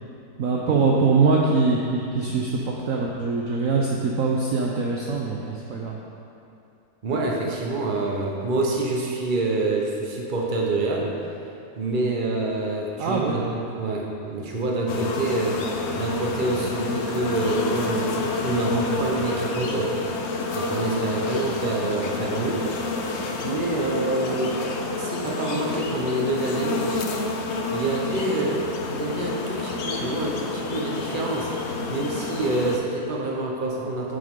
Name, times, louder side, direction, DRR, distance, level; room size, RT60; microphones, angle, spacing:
voice 1, 0.4-6.0 13.0-13.4, right 4 dB, 60° right, -2 dB, 1.0 m, -23 dB
voice 2, 7.0-11.2 11.8-15.7 15.9-20.0 20.5-22.7 23.4-24.5 25.0-27.0 27.7-28.6 28.9-31.5 31.9-34.2, right 2 dB, 35° right, -1 dB, 1.1 m, -27 dB
sound 1, 14.9-32.8, left 3 dB, 55° left, 0.8 m, -29 dB
10.0 x 7.6 x 3.8 m, 2.7 s
omnidirectional pair, 1.8 m